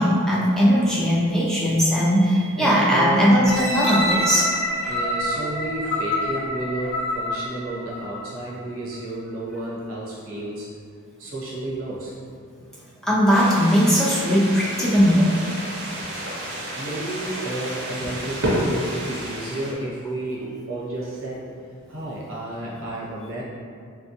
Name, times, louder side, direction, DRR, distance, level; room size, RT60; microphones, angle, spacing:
voice 1, 0.0-4.5 13.0-15.4, equal, ahead, -7 dB, 0.4 m, -19 dB
voice 2, 2.6-3.3 4.8-10.7 11.2-12.1 16.5-21.5 21.9-23.4, right 1 dB, 80° right, -6 dB, 0.9 m, -31 dB
sound 1, 3.4-8.4 8.9-9.0, left 1 dB, 60° left, 0.5 m, -27 dB
sound 2, 13.3-19.7, right 1 dB, 55° right, 0.6 m, -30 dB
3.1 x 2.2 x 2.9 m, 2.2 s
head